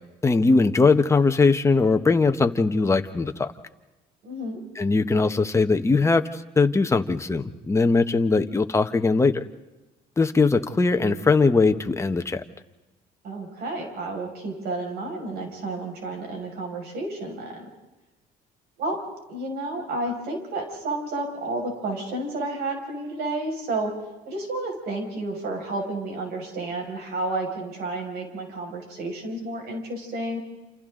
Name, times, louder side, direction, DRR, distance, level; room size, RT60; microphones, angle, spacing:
voice 1, 0.2-3.5 4.8-6.2 6.6-9.4 10.2-12.4, left 4 dB, 15° left, 7 dB, 1.3 m, -20 dB
voice 2, 4.2-4.6 13.2-17.7 18.8-19.0 19.3-23.9 24.3-30.4, right 2 dB, 70° right, 2 dB, 6.1 m, -31 dB
28.5 x 28.5 x 3.9 m, 1.1 s
cardioid pair, 110°, 17 cm